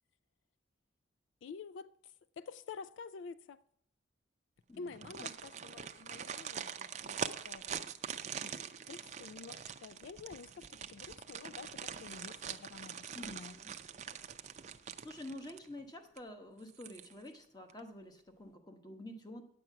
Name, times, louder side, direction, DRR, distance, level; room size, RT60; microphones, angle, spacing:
voice 1, 1.4-3.6 4.8-7.7 8.4-8.6 8.9-13.6, left 5 dB, 70° left, 0.3 m, -49 dB
voice 2, 4.7-5.3 13.1-13.7 15.0-19.4, left 1 dB, 20° left, 1.0 m, -49 dB
sound 1, 4.9-15.8 16.2-16.3 16.7-17.4 17.7-17.8, right 7 dB, 35° right, 0.5 m, -44 dB
10.0 x 7.7 x 5.7 m
head